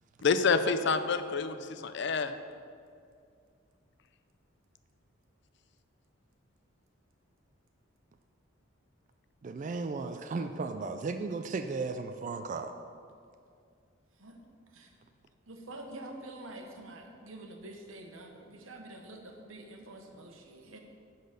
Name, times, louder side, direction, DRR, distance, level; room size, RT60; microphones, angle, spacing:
voice 1, 0.2-2.3, left 4 dB, 60° left, 10 dB, 0.4 m, -28 dB
voice 2, 9.4-12.7, right 4 dB, 40° right, 7 dB, 0.3 m, -35 dB
voice 3, 15.5-20.8, right 1 dB, 85° right, 3 dB, 1.1 m, -47 dB
10.5 x 4.0 x 6.6 m, 2.3 s
head